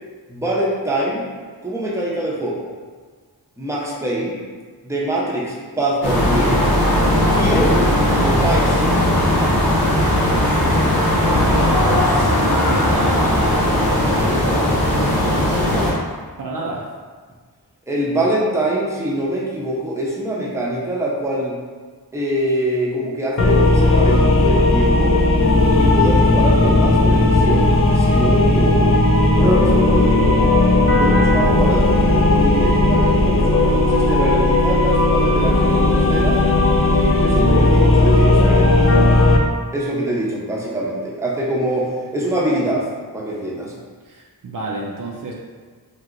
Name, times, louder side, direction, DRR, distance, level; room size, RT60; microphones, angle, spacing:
voice 1, 0.3-1.2 1.6-2.7 3.6-4.4 4.8-6.6 7.3-7.8 8.2-8.9 17.9-21.6 22.1-25.2 25.8-29.0 29.4-30.4 30.9-36.4 36.8-39.1 39.7-42.9 43.1-43.7, right 1 dB, 5° right, -5 dB, 0.6 m, -23 dB
sound 1, 6.0-15.9, left 1 dB, 65° left, 0.9 m, -17 dB
voice 2, 10.6-11.2 11.5-15.9 16.4-16.9 44.0-45.3, right 2 dB, 55° right, -3 dB, 0.5 m, -30 dB
sound 2, 23.4-39.4, left 2 dB, 35° left, 0.4 m, -15 dB
2.9 x 2.9 x 2.5 m, 1.5 s
wide cardioid pair, 55°, 39 cm